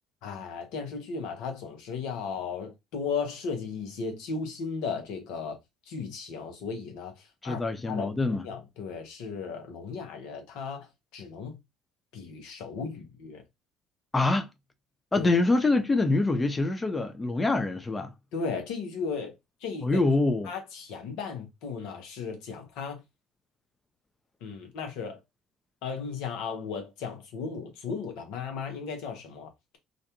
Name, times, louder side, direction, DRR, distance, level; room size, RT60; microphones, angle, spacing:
voice 1, 0.2-5.6 5.9-10.9 11.1-11.6 12.1-13.4 15.1-15.3 18.3-19.4 19.6-20.0 20.4-23.0 24.4-25.2 25.8-29.8, left 5 dB, 70° left, 0.8 m, -36 dB
voice 2, 7.4-8.4 14.1-14.5 15.1-18.1 19.8-20.5, left 2 dB, 20° left, 0.5 m, -25 dB
2.5 x 2.2 x 2.8 m
hypercardioid pair, 65°, 0 cm